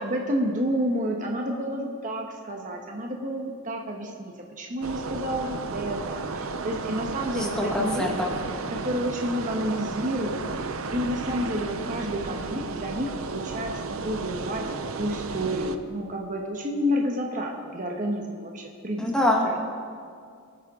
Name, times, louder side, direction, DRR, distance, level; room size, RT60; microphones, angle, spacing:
voice 1, 0.0-8.3 8.7-13.7 14.0-14.6 15.0-19.0 19.4-19.6, equal, 40° right, 1 dB, 1.3 m, -30 dB
sound 1, 4.8-15.8, right 4 dB, 80° right, 0.7 m, -33 dB
voice 2, 7.6-8.3 19.0-19.6, left 1 dB, 5° left, -2 dB, 1.7 m, -24 dB
24.5 x 8.8 x 3.8 m, 2.2 s
head